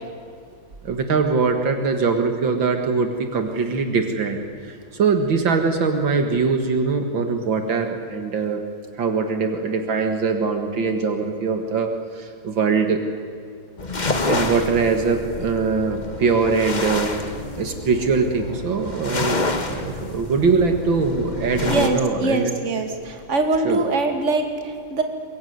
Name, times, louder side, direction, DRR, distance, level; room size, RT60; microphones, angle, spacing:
voice 1, 0.8-4.4 4.7-8.6 9.0-13.0 14.0-17.2 17.5-22.5 23.6-23.8, right 4 dB, 70° right, 5 dB, 2.5 m, -22 dB
sound 1, 13.8-21.9, left 3 dB, 25° left, 1.5 m, -28 dB
voice 2, 21.7-25.0, right 2 dB, 35° right, 5 dB, 2.5 m, -23 dB
23.0 x 21.5 x 9.5 m, 2.2 s
omnidirectional pair, 2.2 m